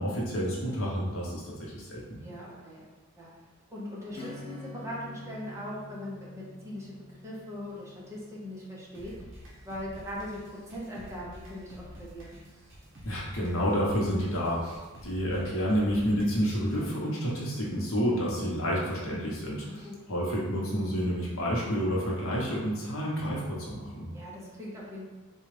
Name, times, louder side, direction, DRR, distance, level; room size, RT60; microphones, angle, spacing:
voice 1, 0.0-2.2 13.0-24.0, equal, 65° left, -4 dB, 0.9 m, -29 dB
voice 2, 2.2-3.3 3.7-9.1 9.7-12.5 19.6-20.0 24.1-25.1, equal, 15° right, -6 dB, 0.8 m, -40 dB
Acoustic guitar / Strum, 4.1-10.3, left 2 dB, 25° left, 0.5 m, -47 dB
sound 1, 8.9-16.9, equal, 55° right, 0.8 m, -49 dB
3.8 x 2.3 x 3.2 m, 1.3 s
head